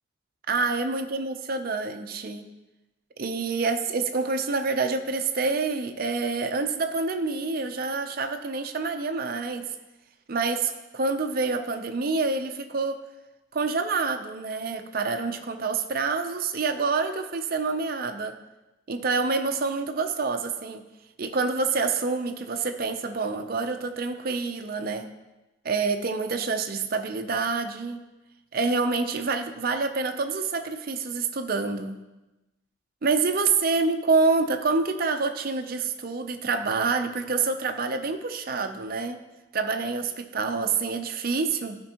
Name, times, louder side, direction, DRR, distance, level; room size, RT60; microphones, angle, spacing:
voice 1, 0.5-2.4 3.2-9.6 10.3-13.0 13.5-18.4 18.9-20.8 21.2-25.1 25.6-28.0 28.5-32.0 33.0-39.2 39.5-41.8, right 4 dB, 45° right, 7 dB, 0.5 m, -27 dB
12.5 x 5.2 x 2.9 m, 1.0 s
head